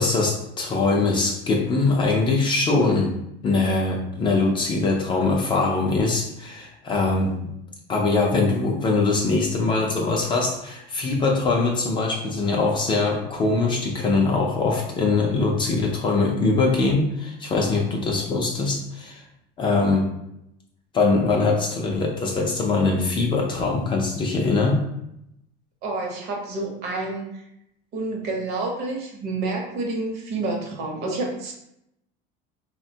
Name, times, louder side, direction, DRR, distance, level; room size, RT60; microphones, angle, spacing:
voice 1, 0.0-3.1 3.4-7.3 7.9-19.2 19.6-20.1 20.9-24.8, left 3 dB, 25° left, 0 dB, 0.3 m, -22 dB
voice 2, 25.8-27.4 27.9-31.5, right 2 dB, 55° right, 1 dB, 0.7 m, -29 dB
3.4 x 2.1 x 2.6 m, 0.81 s
cardioid pair, 165°, 21 cm